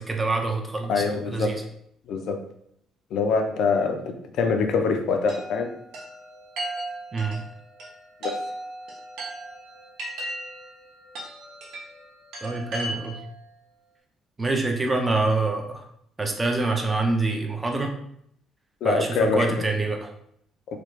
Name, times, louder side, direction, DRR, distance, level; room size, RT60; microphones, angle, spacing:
voice 1, 0.0-1.6 7.1-7.4 12.4-13.2 14.4-15.8 16.2-17.9 18.8-20.1, right 3 dB, 15° right, 2 dB, 0.4 m, -26 dB
voice 2, 0.9-1.6 2.1-2.4 3.1-5.7 8.2-8.4 18.8-19.6, left 4 dB, 65° left, 5 dB, 0.4 m, -24 dB
Chime, 5.3-13.4, right 1 dB, 90° right, 0.9 m, -37 dB
3.3 x 2.3 x 3.0 m, 0.70 s
cardioid pair, 155°, 0 cm